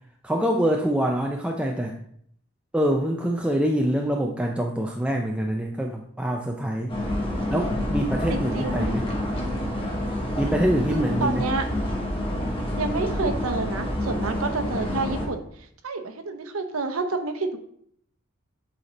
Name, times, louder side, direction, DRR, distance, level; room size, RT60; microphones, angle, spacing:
voice 1, 0.2-2.0 2.7-6.9 7.5-9.1 10.4-11.4, equal, 5° right, 1 dB, 0.4 m, -25 dB
sound 1, 6.9-15.3, left 1 dB, 25° left, 1.5 m, -28 dB
voice 2, 8.3-9.0 10.9-11.7 12.8-15.5 15.8-17.6, right 3 dB, 85° right, 8 dB, 0.8 m, -29 dB
8.0 x 4.3 x 4.0 m, 0.66 s
head